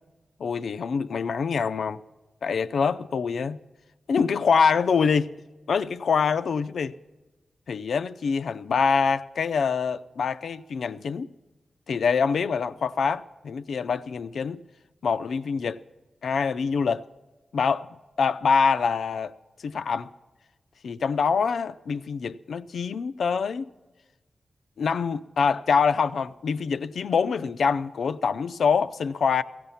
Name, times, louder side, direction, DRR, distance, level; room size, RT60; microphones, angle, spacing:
voice 1, 0.4-2.0 2.4-3.6 4.1-5.3 5.7-6.9 7.7-11.3 11.9-14.6 15.0-15.8 16.2-17.1 17.5-17.9 18.2-19.3 19.6-20.1 20.8-23.7 24.8-29.4, left 5 dB, 75° left, 0.5 m, -25 dB
17.0 x 15.0 x 5.7 m
wide cardioid pair, 145°, 0 cm